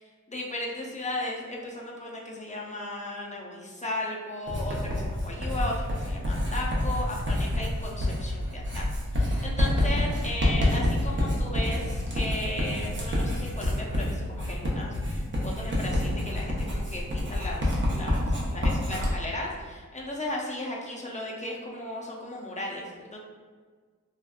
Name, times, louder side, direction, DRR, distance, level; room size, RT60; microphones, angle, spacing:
voice 1, 0.3-8.8 9.1-23.2, left 1 dB, 25° left, -3 dB, 0.4 m, -35 dB
Writing, 4.5-19.1, left 1 dB, 40° right, 0.6 m, -28 dB
2.8 x 2.3 x 2.3 m, 1.6 s
wide cardioid pair, 80°, 31 cm